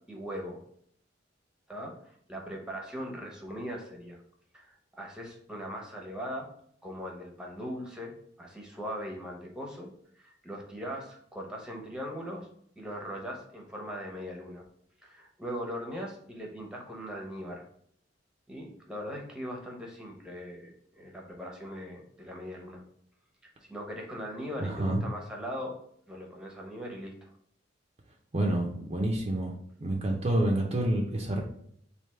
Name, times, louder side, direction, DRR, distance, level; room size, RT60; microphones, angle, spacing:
voice 1, 0.1-0.6 1.7-4.2 4.5-6.5 6.8-8.1 8.4-9.9 10.2-12.5 12.8-14.6 15.0-17.6 18.5-22.8 23.6-25.8 26.1-27.3, equal, 5° right, -1 dB, 0.9 m, -40 dB
voice 2, 24.6-25.0 28.3-29.5 29.8-31.4, right 1 dB, 35° right, 0 dB, 0.6 m, -28 dB
3.3 x 2.7 x 4.3 m, 0.65 s
head